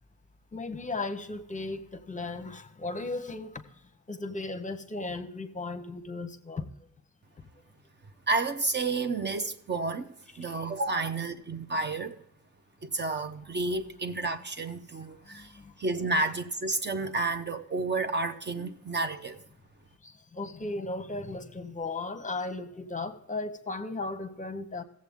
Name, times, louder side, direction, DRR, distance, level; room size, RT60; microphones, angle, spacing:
voice 1, 0.5-3.6 4.1-6.7 20.3-24.8, left 3 dB, 25° left, 0.8 m, -36 dB
voice 2, 8.3-12.2 12.8-15.5 15.8-19.4, right 3 dB, 35° right, 0.6 m, -31 dB
16.5 x 7.4 x 3.5 m
wide cardioid pair, 150°, 29 cm